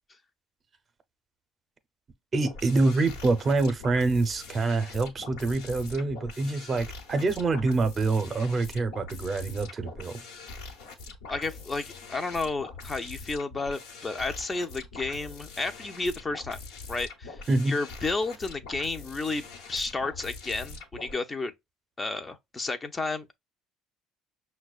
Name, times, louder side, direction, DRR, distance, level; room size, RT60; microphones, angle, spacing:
voice 1, 2.3-10.2 17.5-17.7, right 3 dB, 40° right, 0.7 m, -26 dB
sound 1, 2.4-21.1, left 3 dB, 75° left, 1.1 m, -43 dB
voice 2, 11.3-16.6 16.9-21.5 22.0-23.3, left 3 dB, 25° left, 0.5 m, -32 dB
5.9 x 2.2 x 2.3 m
hypercardioid pair, 65°, 0 cm